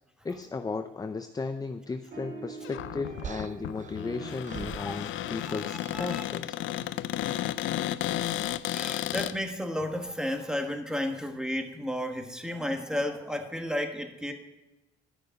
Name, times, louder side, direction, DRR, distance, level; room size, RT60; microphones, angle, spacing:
voice 1, 0.2-6.5, left 4 dB, 20° left, 8 dB, 0.5 m, -35 dB
sound 1, 2.1-9.0, right 2 dB, 70° right, 3.9 m, -47 dB
Cupboard open or close, 2.6-9.3, left 13 dB, 75° left, 0.4 m, -33 dB
sound 2, 3.2-5.5 5.8-6.2 7.2-7.6 8.9-9.2, right 7 dB, 40° right, 0.5 m, -44 dB
voice 2, 5.4-6.2 8.7-14.3, left 1 dB, 5° right, 5 dB, 1.5 m, -33 dB
11.0 x 6.5 x 5.2 m, 1.0 s
cardioid pair, 90°, 20 cm